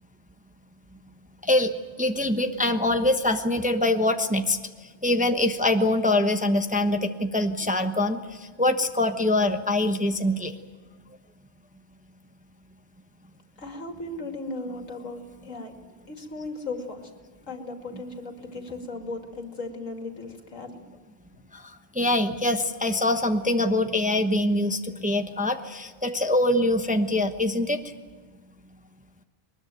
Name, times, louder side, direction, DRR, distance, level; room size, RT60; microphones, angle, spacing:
voice 1, 2.0-4.6 5.0-8.2 8.6-10.5 22.0-27.8, left 1 dB, 5° right, 6 dB, 0.9 m, -24 dB
voice 2, 13.6-15.7 16.1-17.1 17.5-20.8, left 2 dB, 80° left, 4 dB, 2.7 m, -36 dB
22.5 x 20.5 x 9.1 m, 1.4 s
omnidirectional pair, 1.3 m